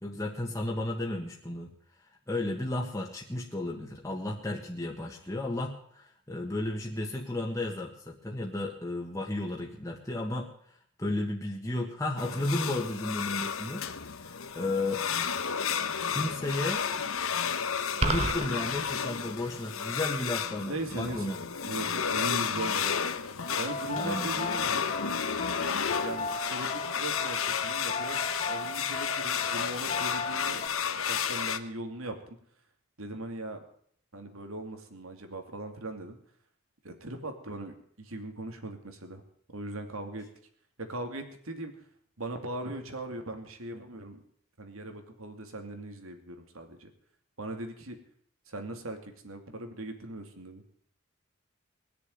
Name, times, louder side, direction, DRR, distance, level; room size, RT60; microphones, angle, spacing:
voice 1, 0.0-1.7 2.3-10.5 11.0-13.9 14.2-15.0 16.1-16.8 18.0-21.7 24.0-24.3, left 2 dB, 15° left, -1 dB, 1.6 m, -33 dB
sound 1, 12.2-31.6, left 7 dB, 85° left, 1.0 m, -32 dB
sound 2, 18.0-18.5, right 2 dB, 30° right, 1.2 m, -27 dB
voice 2, 20.7-23.0 23.6-24.8 26.0-30.7 31.1-32.4 33.0-33.6 34.1-36.2 36.8-39.2 39.5-40.3 40.8-41.7 42.2-44.2 44.6-46.9 47.4-48.0 48.5-50.6, right 2 dB, 90° right, 6 dB, 2.5 m, -39 dB
sound 3, 23.4-30.7, left 3 dB, 30° left, 0.8 m, -37 dB
20.5 x 6.9 x 9.5 m, 0.64 s
head